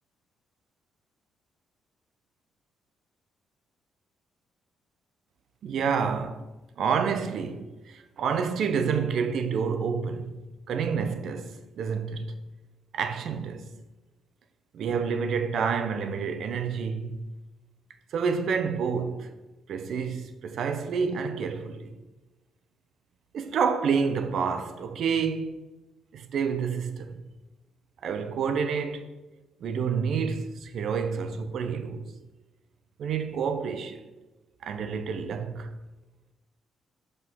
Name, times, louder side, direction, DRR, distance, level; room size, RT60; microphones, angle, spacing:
voice 1, 5.6-6.4 6.8-10.4 10.7-12.4 12.9-13.7 14.7-17.3 18.1-19.3 19.7-21.9 23.3-25.6 26.1-27.2 28.0-29.1 29.6-32.1 33.0-34.1 34.6-35.7, right 6 dB, 70° right, 0.8 m, -29 dB
5.7 x 5.4 x 6.2 m
cardioid pair, 90°, 0 cm